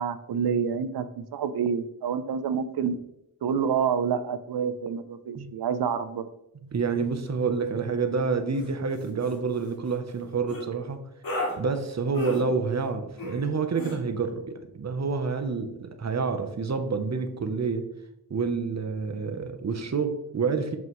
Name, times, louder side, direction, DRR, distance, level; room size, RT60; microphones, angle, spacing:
voice 1, 0.0-3.0 3.4-6.2, right 7 dB, 85° right, 12 dB, 0.6 m, -28 dB
voice 2, 6.7-11.0 11.6-17.9 18.3-20.8, right 4 dB, 45° right, 8 dB, 0.8 m, -28 dB
sound 1, 8.5-8.7 9.0-9.3 10.5-10.6 11.2-11.6 12.1-12.4 13.2-13.4 13.7-14.0, left 1 dB, 65° left, 2.1 m, -33 dB
7.2 x 5.9 x 3.1 m, 0.83 s
wide cardioid pair, 100°, 37 cm